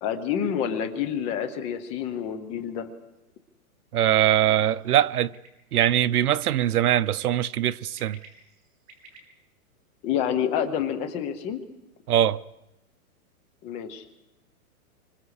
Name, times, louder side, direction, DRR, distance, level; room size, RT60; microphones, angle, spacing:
voice 1, 0.0-2.9 10.0-11.6 13.6-14.0, left 8 dB, 15° left, 0.8 m, -28 dB
voice 2, 3.9-5.3 5.7-8.2 12.1-12.4, right 11 dB, 80° right, 0.9 m, -22 dB
Bird, 5.1-5.5 6.1-6.4 7.0-7.3 7.8-9.2, right 5 dB, 50° right, 7.4 m, -50 dB
26.5 x 25.5 x 4.9 m
hypercardioid pair, 165°, 44 cm